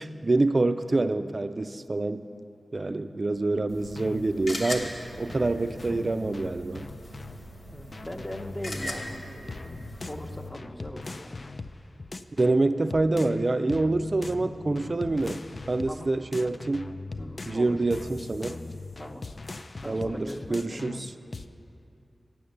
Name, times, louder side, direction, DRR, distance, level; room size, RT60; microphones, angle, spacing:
voice 1, 0.0-2.2 2.7-4.9 5.2-6.9 12.4-15.4 15.7-16.9 17.5-18.6 19.9-21.0, right 2 dB, 50° right, 11 dB, 0.4 m, -26 dB
sound 1, 3.7-10.5, left 1 dB, 75° left, 1.1 m, -40 dB
sound 2, 4.0-4.3 5.3-7.4 7.9-13.4 13.7-16.0 16.3-21.5, left 3 dB, 55° left, 0.3 m, -40 dB
voice 2, 7.7-11.5 15.9-16.1 17.2-17.8 19.0-19.3 19.8-20.9, left 1 dB, 20° left, 4 dB, 0.7 m, -40 dB
8.6 x 7.0 x 6.5 m, 2.7 s
cardioid pair, 55°, 0 cm